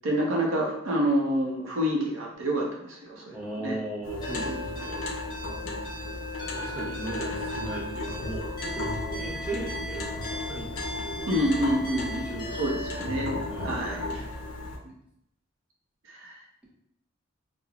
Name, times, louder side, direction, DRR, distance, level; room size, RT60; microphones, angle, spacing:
voice 1, 0.0-3.8 4.5-4.6 11.3-13.3 13.6-14.2 16.1-16.3, equal, 85° right, -1 dB, 0.6 m, -28 dB
voice 2, 3.3-5.0 6.5-11.2 12.1-14.2, right 2 dB, 5° right, -6 dB, 0.5 m, -38 dB
sound 1, 4.0-14.8, left 2 dB, 80° left, 0.4 m, -35 dB
sound 2, 4.2-12.9, left 2 dB, 25° left, 0.9 m, -39 dB
3.0 x 2.1 x 2.4 m, 0.78 s
head